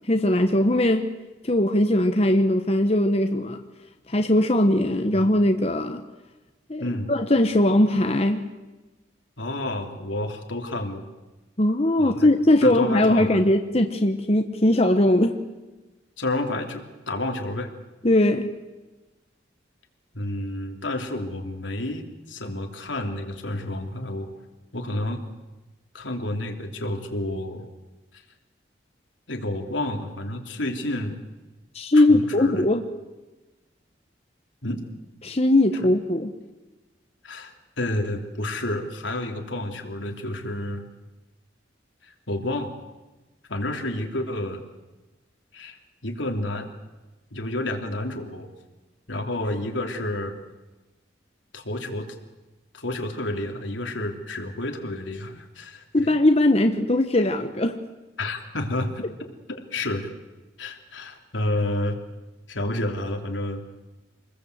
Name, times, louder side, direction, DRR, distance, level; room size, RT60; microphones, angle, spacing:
voice 1, 0.1-1.1 1.4-3.6 4.1-6.0 6.7-8.5 11.6-15.3 18.0-18.5 31.7-32.8 35.2-36.3 55.9-57.8, left 1 dB, 35° left, 6 dB, 1.1 m, -20 dB
voice 2, 6.8-7.1 9.4-11.1 12.0-12.3 12.6-13.4 16.2-17.7 20.1-24.3 24.7-25.2 25.9-27.6 28.1-28.2 29.3-31.2 31.9-32.6 34.6-34.8 37.2-40.9 42.0-42.7 43.5-44.6 45.5-46.7 47.3-48.5 49.1-50.4 51.5-52.1 52.7-56.1 58.2-59.0 59.5-60.1 60.6-62.0 62.5-63.6, left 1 dB, 80° left, 3 dB, 3.2 m, -30 dB
27.5 x 20.5 x 8.1 m, 1.1 s
head